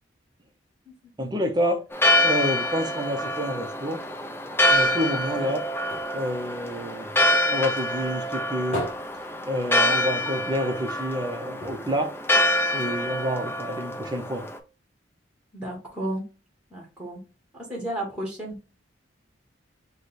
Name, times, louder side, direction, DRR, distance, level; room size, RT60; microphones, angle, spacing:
voice 1, 1.2-4.0 4.7-5.6 6.1-8.8 9.5-12.1 12.7-14.5, equal, 20° right, 0.7 m, -28 dB
Church bell, 1.9-14.6, left 1 dB, 10° left, 0.5 m, -26 dB
sound 1, 5.9-7.6 8.0-10.2 10.6-10.7 11.0-11.1 11.6-13.1 13.7-13.8, left 1 dB, 35° left, 2.0 m, -38 dB
voice 2, 15.5-16.2 16.7-17.2 17.5-18.6, right 1 dB, 5° right, 1.3 m, -33 dB
4.9 x 2.3 x 4.1 m
head